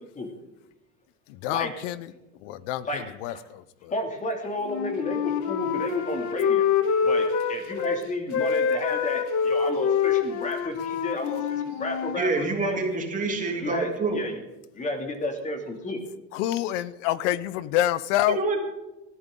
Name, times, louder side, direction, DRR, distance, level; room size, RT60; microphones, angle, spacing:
voice 1, 1.3-2.1 2.4-3.9 16.3-18.4, left 13 dB, 75° left, 17 dB, 1.0 m, -27 dB
voice 2, 2.8-3.4 3.9-6.7 7.0-12.8 13.6-14.4 14.7-16.0, left 1 dB, 20° left, 4 dB, 2.7 m, -32 dB
Wind instrument woodwind instrument, 4.6-8.0 8.3-12.2, left 6 dB, 50° left, 1.7 m, -26 dB
voice 3, 12.2-14.2 18.3-18.6, right 3 dB, 20° right, 1 dB, 3.1 m, -27 dB
19.5 x 14.0 x 3.9 m, 0.99 s
cardioid pair, 150°, 37 cm